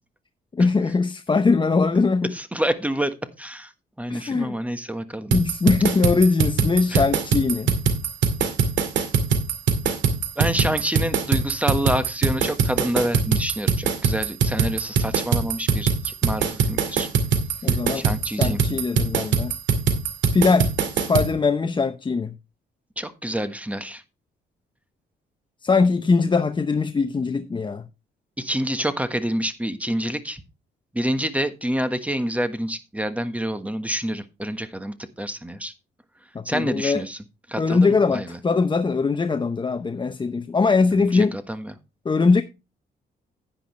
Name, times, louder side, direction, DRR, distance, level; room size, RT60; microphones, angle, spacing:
voice 1, 0.5-2.3 4.1-4.6 5.3-7.7 17.6-19.5 20.3-22.3 25.6-27.8 36.3-37.0 37.6-41.3 42.0-42.4, left 4 dB, 25° left, 0.7 m, -21 dB
voice 2, 2.3-3.7 4.0-5.3 6.9-7.0 10.4-17.1 17.6-18.6 23.0-24.0 28.4-30.4 30.9-35.7 36.4-37.2 37.5-38.4 40.9-41.7, equal, 5° right, 1.3 m, -27 dB
sound 1, 5.3-21.3, right 5 dB, 85° right, 2.2 m, -22 dB
10.0 x 10.0 x 3.2 m
cardioid pair, 90°, 18 cm